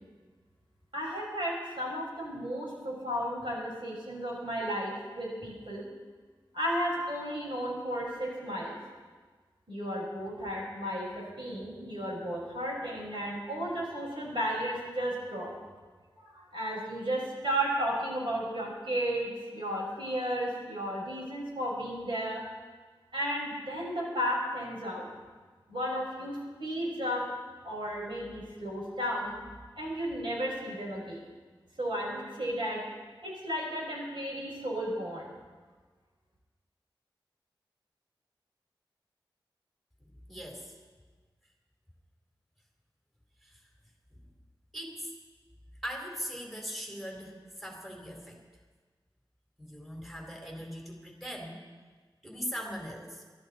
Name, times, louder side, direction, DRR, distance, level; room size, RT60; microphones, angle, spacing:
voice 1, 0.9-5.8 6.5-8.8 9.7-15.5 16.2-22.4 23.1-25.1 25.7-27.2 27.6-29.3 29.8-31.2 31.8-32.8 33.2-35.3, equal, 70° right, -3 dB, 5.7 m, -34 dB
voice 2, 40.3-40.7 43.4-43.6 44.1-44.2 44.7-45.1 45.8-48.4 49.6-51.6 52.2-53.2, equal, ahead, 0 dB, 3.7 m, -40 dB
24.0 x 13.0 x 4.3 m, 1.4 s
wide cardioid pair, 55°, 9 cm